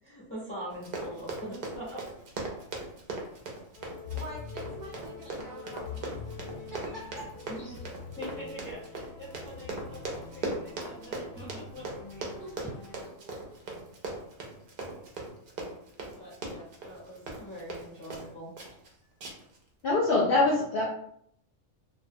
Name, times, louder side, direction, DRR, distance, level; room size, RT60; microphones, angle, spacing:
voice 1, 0.0-2.0 7.5-7.8 8.2-12.3 16.2-18.5 19.0-19.1, equal, 20° left, -9 dB, 0.4 m, -43 dB
Run, 0.7-18.3 18.6-18.9 19.2-19.6 19.9-20.0, right 3 dB, 60° right, 0.6 m, -39 dB
sound 1, 3.7-13.1, left 5 dB, 90° left, 1.0 m, -44 dB
voice 2, 4.1-7.3 12.4-12.5 13.2-13.6, right 1 dB, 15° right, -5 dB, 0.8 m, -46 dB
voice 3, 19.8-20.8, left 2 dB, 60° left, -4 dB, 0.6 m, -24 dB
2.2 x 2.2 x 2.6 m, 0.69 s
omnidirectional pair, 1.3 m